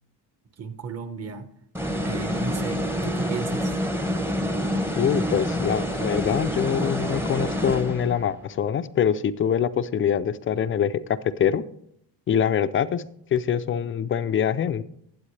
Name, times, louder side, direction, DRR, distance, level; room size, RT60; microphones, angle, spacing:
voice 1, 0.6-1.5 2.0-3.7, right 5 dB, 35° right, 8 dB, 1.2 m, -34 dB
sound 1, 1.7-8.4, equal, 5° right, 0.8 m, -27 dB
voice 2, 5.0-11.6 12.3-13.0 13.3-14.8, left 8 dB, 30° left, 12 dB, 0.4 m, -24 dB
21.5 x 8.1 x 3.3 m, 0.70 s
cardioid pair, 165°, 42 cm